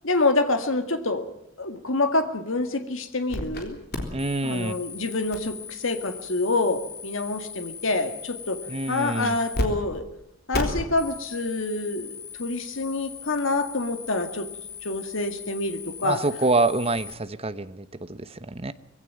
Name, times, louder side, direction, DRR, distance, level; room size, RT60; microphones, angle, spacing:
voice 1, 0.0-1.2 1.6-3.8 4.4-8.6 8.9-10.0 10.5-14.5 14.8-16.2, left 2 dB, 70° left, 7 dB, 2.0 m, -27 dB
sound 1, 3.3-3.6 3.9-9.7 9.9-10.0 10.5-17.1, left 3 dB, 50° left, 3.7 m, -36 dB
voice 2, 4.1-4.8 8.7-9.4 16.0-18.7, right 3 dB, 30° right, 13 dB, 0.9 m, -26 dB
21.5 x 16.0 x 9.3 m, 0.82 s
head